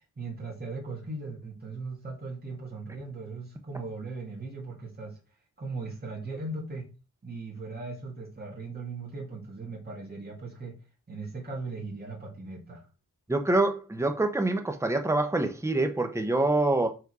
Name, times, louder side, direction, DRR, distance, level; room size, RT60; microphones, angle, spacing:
voice 1, 0.2-5.2 5.6-6.9 7.2-10.8 11.1-12.9, right 3 dB, 30° right, 2.0 m, -38 dB
voice 2, 13.3-16.9, right 2 dB, 10° right, 0.8 m, -25 dB
5.2 x 4.7 x 4.8 m
wide cardioid pair, 125°, 32 cm